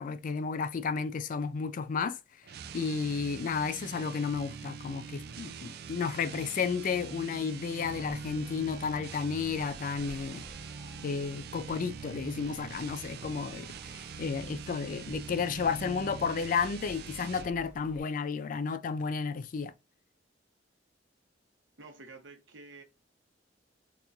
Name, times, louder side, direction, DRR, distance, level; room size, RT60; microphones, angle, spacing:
voice 1, 0.0-2.2 2.7-10.5 11.0-19.7, left 5 dB, 45° left, 0.3 m, -32 dB
sound 1, 2.4-17.6, right 6 dB, 60° right, 0.4 m, -44 dB
sound 2, 7.8-18.0, equal, 5° right, 2.0 m, -54 dB
voice 2, 21.8-22.8, right 3 dB, 80° right, 0.9 m, -50 dB
3.4 x 3.0 x 2.6 m
head